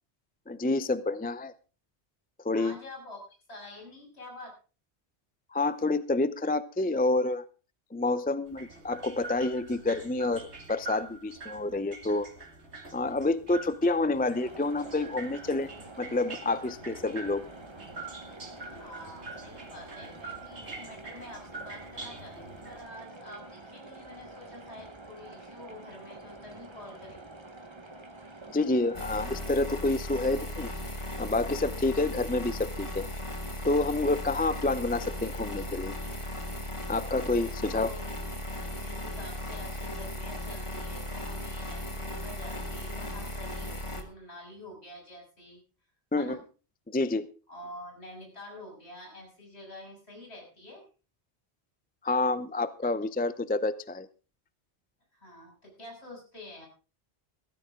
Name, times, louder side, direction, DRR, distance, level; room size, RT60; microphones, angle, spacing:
voice 1, 0.5-1.5 2.4-2.7 5.5-7.4 7.9-12.3 12.9-15.7 16.0-17.4 28.5-30.7 31.2-33.1 33.6-35.9 36.9-37.9 46.1-46.4 46.9-47.3 52.0-54.1, left 2 dB, 10° left, 14 dB, 0.5 m, -28 dB
voice 2, 2.5-3.2 3.5-4.6 18.6-27.3 27.8-27.9 37.4-38.1 38.5-45.6 46.2-46.4 47.5-50.9 55.1-56.7, left 1 dB, 70° left, 1 dB, 7.3 m, -47 dB
sound 1, 8.5-22.8, right 3 dB, 75° right, 2.6 m, -45 dB
sound 2, 14.2-29.5, right 2 dB, 25° right, 1.4 m, -47 dB
sound 3, 28.9-44.0, left 1 dB, 25° left, 2.1 m, -37 dB
16.5 x 14.5 x 3.7 m, 0.35 s
omnidirectional pair, 1.1 m